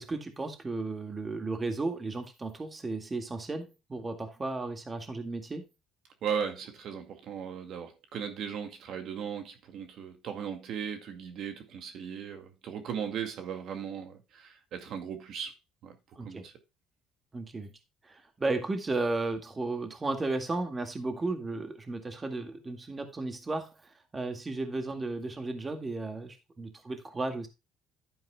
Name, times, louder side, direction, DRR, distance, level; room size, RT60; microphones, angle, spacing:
voice 1, 0.0-5.7 16.2-16.4 17.3-17.7 18.0-27.5, right 3 dB, 20° right, 2.0 m, -34 dB
voice 2, 6.2-15.5 15.8-15.9 16.3-16.5, right 7 dB, 60° right, 2.1 m, -37 dB
11.5 x 9.2 x 2.3 m
cardioid pair, 105°, 0 cm